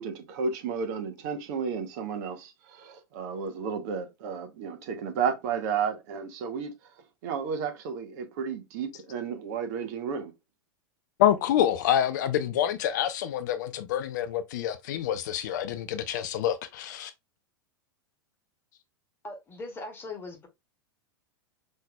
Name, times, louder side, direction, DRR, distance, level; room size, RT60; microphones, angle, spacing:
voice 1, 0.0-6.7 7.2-10.3, right 6 dB, 50° right, 1.1 m, -32 dB
voice 2, 11.2-17.1, left 10 dB, 50° left, 0.5 m, -27 dB
voice 3, 19.2-20.5, left 2 dB, 20° left, 1.5 m, -40 dB
5.6 x 3.1 x 2.3 m
figure-of-eight pair, 90°, 12 cm